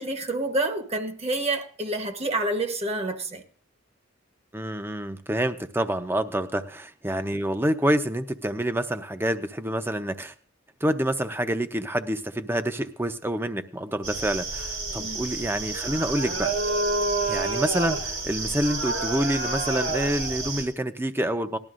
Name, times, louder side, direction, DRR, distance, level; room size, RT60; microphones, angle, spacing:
voice 1, 0.0-3.4 15.0-15.2, right 2 dB, 30° right, 1.1 m, -28 dB
voice 2, 4.5-10.3 10.8-16.6 17.3-21.6, right 1 dB, 10° right, 0.7 m, -27 dB
sound 1, 14.0-20.6, right 2 dB, 90° right, 4.0 m, -29 dB
18.5 x 12.5 x 2.5 m
head